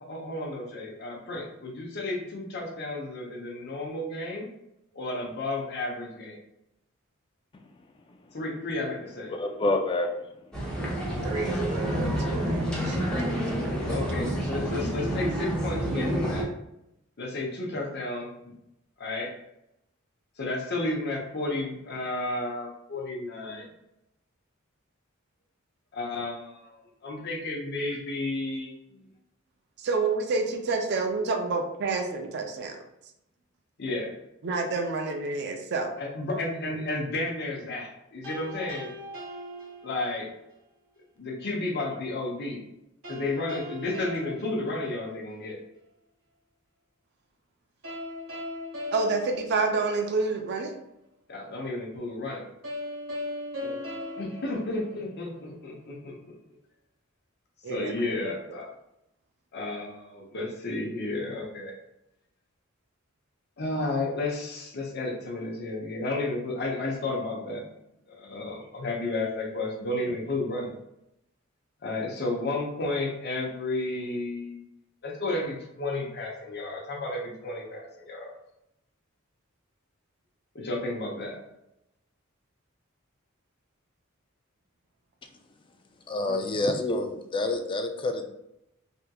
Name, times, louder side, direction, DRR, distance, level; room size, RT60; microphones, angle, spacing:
voice 1, 0.0-4.5 4.9-6.4 8.3-9.3 13.9-16.5 17.2-18.4 19.0-19.3 20.4-23.6 25.9-29.0 33.8-34.1 36.0-38.9 39.8-40.3 41.2-42.6 43.1-45.6 51.3-52.4 54.2-56.3 57.7-58.7 59.5-61.8 63.6-67.6 68.1-70.7 71.8-74.6 75.0-78.3 80.5-81.4, left 2 dB, 55° left, 0 dB, 0.7 m, -32 dB
voice 2, 9.3-10.2 11.3-11.5 86.1-88.3, left 2 dB, 25° left, 5 dB, 0.3 m, -28 dB
sound 1, 10.5-16.4, equal, 5° left, 0.8 m, -28 dB
voice 3, 11.2-13.0 13.2-13.8 29.8-32.8 34.4-35.9 48.9-50.8 53.6-53.8 57.6-58.4 86.3-86.6, right 3 dB, 55° right, 3 dB, 0.4 m, -29 dB
sound 2, 38.2-40.4 43.0-45.5 47.8-50.4 52.6-55.5, left 1 dB, 75° right, 1.1 m, -39 dB
3.5 x 2.8 x 2.3 m, 0.84 s
head